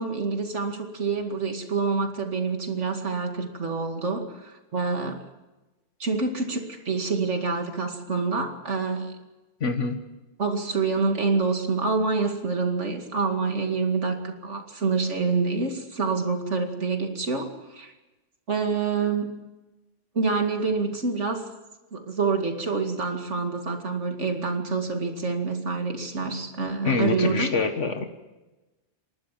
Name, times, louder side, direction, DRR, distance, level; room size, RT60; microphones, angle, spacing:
voice 1, 0.0-5.2 6.0-9.1 10.4-17.9 18.5-19.3 20.1-21.5 21.9-27.5, right 4 dB, 75° right, 4 dB, 2.6 m, -27 dB
voice 2, 9.6-10.0 26.8-28.1, left 4 dB, 75° left, 6 dB, 1.9 m, -25 dB
28.5 x 12.0 x 7.6 m, 1.1 s
omnidirectional pair, 1.2 m